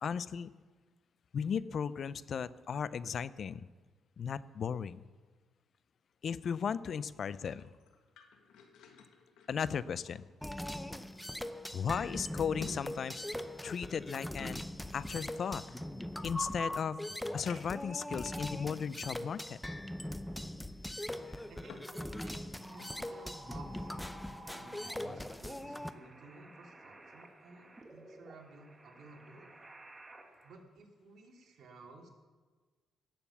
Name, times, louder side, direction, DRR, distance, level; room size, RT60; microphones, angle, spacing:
voice 1, 0.0-0.5 1.3-3.7 4.2-5.0 6.2-7.7 9.5-10.3 11.7-13.2 13.6-14.6 14.9-15.6 16.2-17.0 17.3-19.6, left 7 dB, 55° left, 17 dB, 0.5 m, -36 dB
sound 1, 7.2-11.0 11.4-11.5 12.0-14.0 14.9-16.3 16.9-17.0 17.4-17.9 18.6-18.7 21.0-22.0 22.3-23.1 23.6-23.8, left 6 dB, 85° left, 1.5 m, -54 dB
sound 2, 10.4-25.9, left 1 dB, 5° left, 0.7 m, -41 dB
voice 2, 21.5-29.5 30.4-32.1, right 3 dB, 60° right, 0 dB, 2.8 m, -55 dB
sound 3, 22.6-30.6, right 1 dB, 20° right, 1.8 m, -54 dB
17.5 x 7.0 x 7.1 m, 1.4 s
cardioid pair, 90°, 0 cm